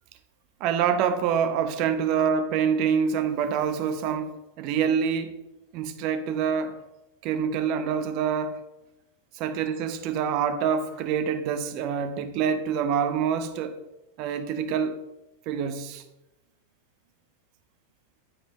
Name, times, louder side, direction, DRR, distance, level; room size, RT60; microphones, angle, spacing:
voice 1, 0.6-5.4 5.7-6.8 7.2-8.6 9.3-13.8 14.2-15.0 15.5-16.0, right 7 dB, 40° right, 0.9 m, -26 dB
9.8 x 8.9 x 3.1 m
figure-of-eight pair, 90°, 0 cm